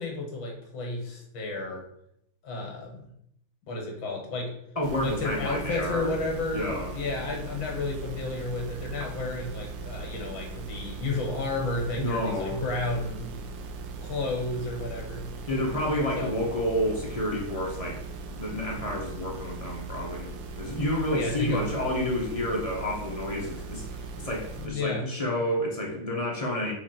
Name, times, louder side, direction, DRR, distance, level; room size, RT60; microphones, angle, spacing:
voice 1, 0.0-1.8 2.4-3.0 3.7-4.5 5.0-13.3 14.0-15.2 16.2-16.3 21.1-21.7 24.6-25.0, left 2 dB, 65° left, 0 dB, 2.3 m, -32 dB
voice 2, 4.7-6.1 6.5-7.0 12.0-12.6 15.5-18.0 18.3-26.7, left 1 dB, 25° left, -2 dB, 0.8 m, -30 dB
sound 1, 4.8-24.7, right 3 dB, 65° right, 1.4 m, -39 dB
6.0 x 4.0 x 4.5 m, 0.74 s
omnidirectional pair, 2.3 m